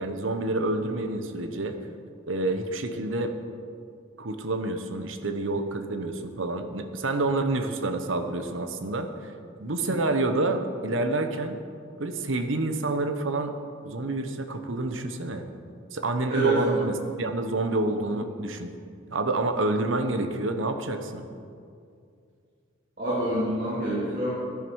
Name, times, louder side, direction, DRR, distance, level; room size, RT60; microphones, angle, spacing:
voice 1, 0.0-1.8 2.3-3.3 4.2-9.3 9.6-11.6 12.0-13.5 13.8-15.4 15.9-18.7 19.1-21.3, right 2 dB, 70° right, 7 dB, 1.0 m, -28 dB
voice 2, 16.3-16.8 23.0-24.4, right 2 dB, 45° right, -8 dB, 3.4 m, -27 dB
16.0 x 11.0 x 4.7 m, 2.4 s
head